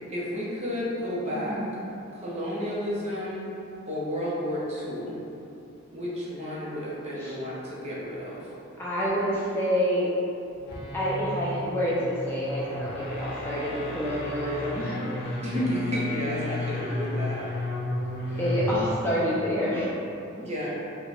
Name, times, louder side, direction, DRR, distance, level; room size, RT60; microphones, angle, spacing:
voice 1, 0.1-1.6 2.1-3.5 3.9-5.2 5.9-8.5 15.4-17.4 18.3-18.4 20.4-20.7, equal, 30° right, -7 dB, 0.8 m, -31 dB
voice 2, 1.3-1.7 7.2-7.3 8.8-10.1 10.9-15.0 18.2-19.9, equal, 10° left, -8 dB, 0.4 m, -28 dB
sound 1, 10.5-19.0, left 1 dB, 50° left, 0.6 m, -33 dB
4.4 x 2.3 x 3.4 m, 2.7 s
head